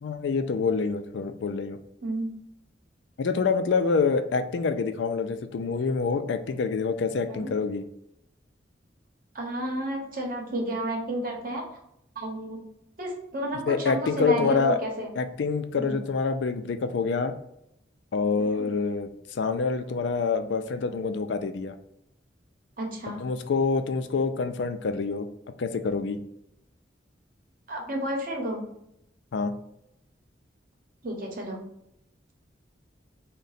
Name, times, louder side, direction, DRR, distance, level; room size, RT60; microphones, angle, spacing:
voice 1, 0.0-1.8 3.2-7.8 13.7-14.8 15.2-17.3 18.1-21.7 23.2-25.3 25.6-26.2 29.3-29.5, left 4 dB, 75° left, 9 dB, 0.4 m, -26 dB
voice 2, 2.0-2.4 7.3-7.6 9.3-11.8 12.1-12.6 13.0-15.1 15.8-16.0 18.5-18.7 22.8-23.2 27.7-28.7 31.0-31.6, right 1 dB, 50° right, 1 dB, 0.9 m, -31 dB
3.7 x 2.2 x 4.0 m, 0.78 s
head